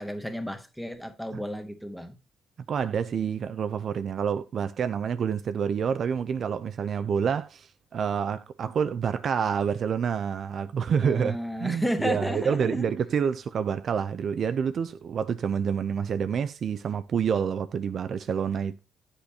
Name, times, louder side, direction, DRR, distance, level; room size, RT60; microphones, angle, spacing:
voice 1, 0.0-2.2 11.0-12.9, equal, 5° left, 1.2 m, -32 dB
voice 2, 2.7-18.8, right 7 dB, 55° right, 0.4 m, -28 dB
8.2 x 5.0 x 2.8 m
cardioid pair, 90°, 0 cm